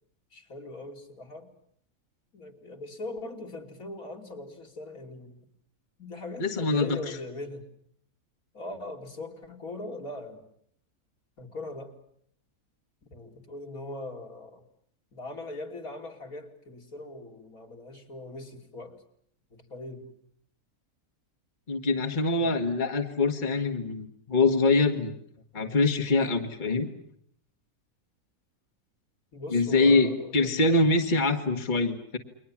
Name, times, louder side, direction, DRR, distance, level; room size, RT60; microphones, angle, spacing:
voice 1, 0.3-1.5 2.3-5.4 6.0-7.7 8.5-10.4 11.4-12.0 13.1-14.6 15.1-19.0 19.5-20.1 22.4-22.8 29.3-30.5, left 2 dB, 65° left, 2 dB, 3.4 m, -40 dB
voice 2, 6.4-7.0 21.7-25.1 25.5-26.9 29.5-32.2, left 3 dB, 30° left, 5 dB, 1.8 m, -24 dB
29.5 x 23.0 x 7.4 m, 0.67 s
omnidirectional pair, 1.6 m